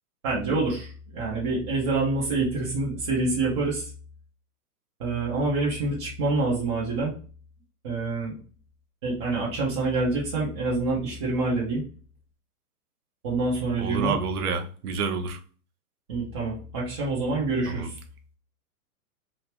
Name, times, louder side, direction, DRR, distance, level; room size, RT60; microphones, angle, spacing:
voice 1, 0.2-3.9 5.0-7.1 7.8-8.3 9.0-11.8 13.2-14.2 16.1-18.0, right 3 dB, 20° right, 0.3 m, -26 dB
voice 2, 13.8-15.4 17.7-17.9, right 5 dB, 70° right, 0.8 m, -28 dB
2.9 x 2.4 x 3.2 m
hypercardioid pair, 130°, 47 cm